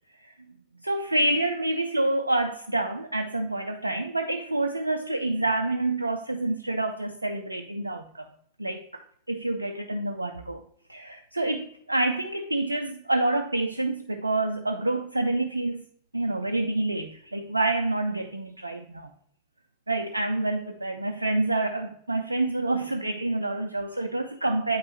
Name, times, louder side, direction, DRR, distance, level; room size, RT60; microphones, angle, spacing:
voice 1, 0.8-8.3 8.6-10.6 10.9-15.8 16.1-19.1 19.9-24.8, right 2 dB, 80° right, 7 dB, 0.3 m, -27 dB
8.4 x 5.3 x 3.0 m, 0.66 s
figure-of-eight pair, 90°, 0 cm